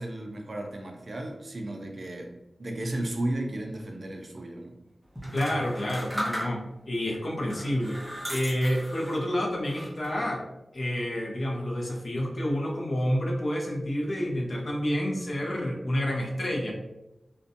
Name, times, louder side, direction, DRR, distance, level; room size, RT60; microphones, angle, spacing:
voice 1, 0.0-2.3 2.6-4.7, right 1 dB, 45° right, 2 dB, 0.4 m, -34 dB
sound 1, 5.2-6.9 7.4-9.3 9.7-10.3, equal, 5° right, 0.6 m, -36 dB
voice 2, 5.3-8.0 8.3-10.4 10.7-16.7, equal, 45° left, 0 dB, 0.5 m, -29 dB
2.7 x 2.1 x 2.5 m, 0.92 s
wide cardioid pair, 115°, 0 cm